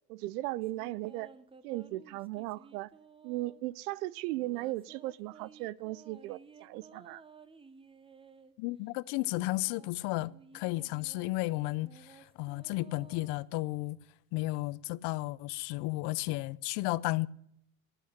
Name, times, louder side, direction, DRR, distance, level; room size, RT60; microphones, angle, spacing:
voice 1, 0.1-1.3 1.6-2.9 3.2-7.2, right 17 dB, 75° right, 0.7 m, -37 dB
sound 1, 0.6-3.7 4.3-8.5 9.1-13.8, right 5 dB, 10° right, 0.8 m, -56 dB
voice 2, 8.6-14.0 14.3-17.3, left 20 dB, 55° left, 0.6 m, -33 dB
12.0 x 9.1 x 8.8 m
hypercardioid pair, 95°, 46 cm